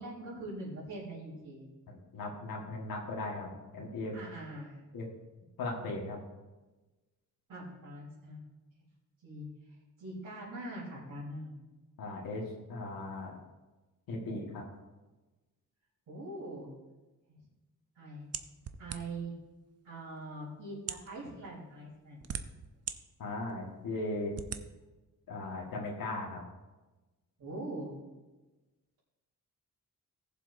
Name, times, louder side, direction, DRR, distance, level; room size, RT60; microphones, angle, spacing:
voice 1, 0.0-1.7 4.1-4.8 7.5-8.4 9.2-9.5 10.0-11.6 16.1-16.7 17.3-17.4 17.9-18.3 18.8-19.3 19.8-22.3 27.4-28.0, right 2 dB, 70° right, -10 dB, 3.9 m, -42 dB
voice 2, 1.9-4.2 4.9-5.0 5.6-6.2 12.0-13.4 14.1-14.6 23.2-24.3 25.3-26.4, left 2 dB, 85° left, -2 dB, 1.7 m, -38 dB
sound 1, 18.3-19.3 20.1-20.2 20.8-21.1 21.9-23.0 23.5-23.6 24.3-24.6, right 8 dB, 45° right, 0.6 m, -39 dB
18.5 x 7.4 x 2.7 m, 1.2 s
wide cardioid pair, 170°, 34 cm